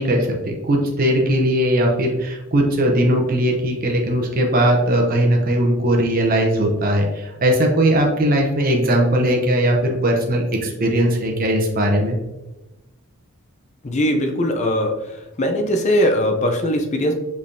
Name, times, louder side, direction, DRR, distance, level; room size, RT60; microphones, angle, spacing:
voice 1, 0.0-12.2, right 1 dB, 40° right, 1 dB, 0.7 m, -19 dB
voice 2, 13.8-14.9 15.4-17.2, equal, 30° left, 4 dB, 0.5 m, -20 dB
5.3 x 3.3 x 2.6 m, 1.0 s
head